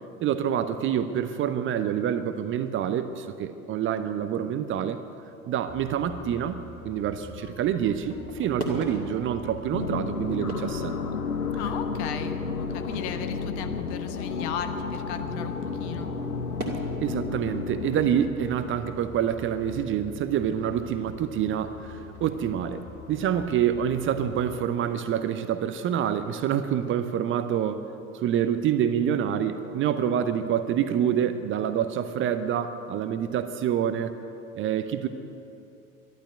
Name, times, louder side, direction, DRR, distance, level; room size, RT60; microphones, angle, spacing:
voice 1, 0.2-5.0 5.5-10.9 17.0-27.9 28.1-34.1 34.5-35.1, right 9 dB, 30° right, 10 dB, 0.7 m, -27 dB
sound 1, 5.7-24.7, left 6 dB, 25° left, 0.7 m, -46 dB
sound 2, 8.0-25.9, right 1 dB, 90° right, 2.2 m, -43 dB
sound 3, 9.7-18.3, left 4 dB, 80° left, 1.1 m, -32 dB
voice 2, 11.6-16.1, left 8 dB, 50° left, 7 dB, 1.3 m, -36 dB
12.0 x 11.5 x 9.3 m, 2.8 s
figure-of-eight pair, 75°, 43 cm